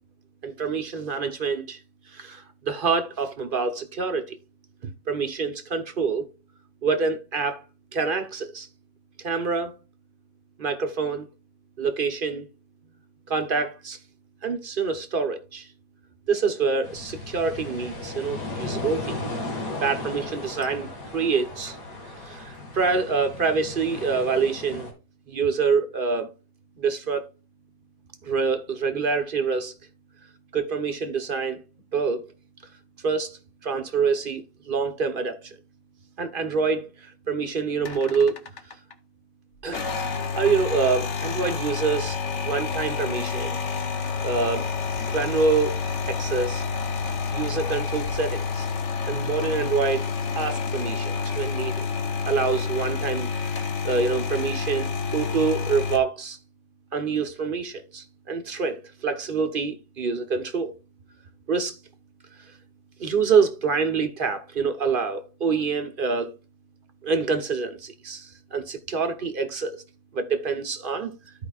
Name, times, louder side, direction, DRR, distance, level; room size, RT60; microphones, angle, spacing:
voice 1, 0.4-1.8 2.1-4.4 4.8-6.3 6.8-7.6 7.9-8.7 9.2-9.7 10.6-11.3 11.8-12.5 13.3-14.0 14.4-15.7 16.3-19.2 19.8-21.8 22.2-24.9 25.3-26.3 26.8-27.3 28.2-29.7 30.5-31.6 31.9-32.2 33.0-35.6 36.2-38.4 39.6-39.9 40.3-42.2 42.5-43.6 44.2-44.7 45.1-46.6 47.3-48.7 49.1-50.1 50.3-51.9 52.3-53.5 53.8-56.4 56.9-60.7 61.5-61.8 63.0-66.3 67.0-69.8 70.1-71.1, right 5 dB, 45° right, 0.7 m, -26 dB
sound 1, 16.8-24.9, left 2 dB, 75° left, 2.8 m, -35 dB
sound 2, 37.8-38.9 39.6-56.0, left 5 dB, 50° left, 1.0 m, -29 dB
14.0 x 4.9 x 2.4 m
omnidirectional pair, 1.8 m